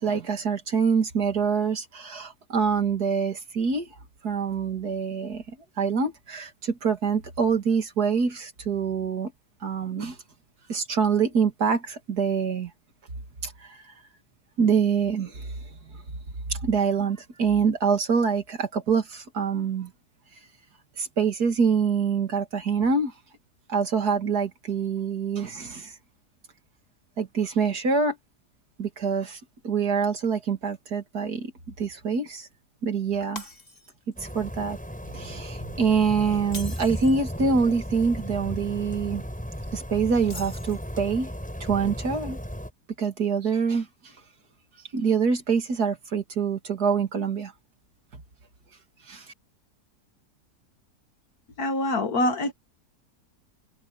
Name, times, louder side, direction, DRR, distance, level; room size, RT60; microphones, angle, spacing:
voice 1, 0.0-3.9 4.2-5.4 5.8-9.3 9.6-10.2 10.7-12.7 13.4-13.8 14.6-15.5 16.5-19.9 21.0-23.1 23.7-26.0 27.2-28.2 28.8-31.5 31.8-32.5 32.8-33.4 34.3-34.8 35.1-39.2 39.7-41.3 41.6-42.4 43.0-43.9 44.9-47.5 48.1-48.2 49.1-49.3, right 5 dB, 85° right, 3.0 m, -25 dB
Shatter, 33.4-34.1 34.6-34.8 36.4-37.2 40.2-41.1, left 2 dB, 35° left, 3.1 m, -42 dB
sound 1, 34.2-42.7, equal, 5° left, 5.8 m, -35 dB
voice 2, 51.6-52.5, left 1 dB, 75° left, 2.2 m, -25 dB
omnidirectional pair, 1.6 m